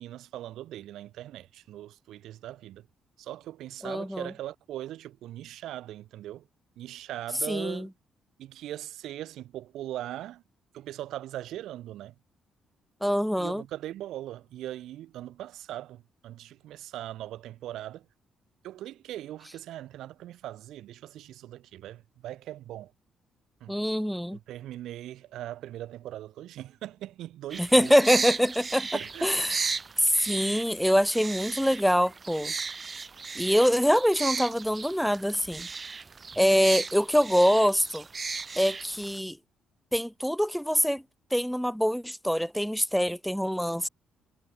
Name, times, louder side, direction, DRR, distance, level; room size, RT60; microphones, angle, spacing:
voice 1, 0.0-2.9 3.2-6.5 6.8-7.9 8.4-10.4 10.7-12.1 13.4-18.1 18.6-22.9 23.6-23.8 24.3-27.9 28.9-29.5, right 13 dB, 80° right, 5.9 m, -40 dB
voice 2, 3.8-4.3 7.5-7.9 13.0-13.6 23.7-24.4 27.6-28.9 29.2-29.6 30.0-32.5 33.3-35.7 36.4-38.0 38.6-39.4 39.9-41.0 41.3-43.9, equal, ahead, 0.9 m, -24 dB
sound 1, 27.5-39.2, right 4 dB, 35° right, 2.4 m, -35 dB
cardioid pair, 90°, 0 cm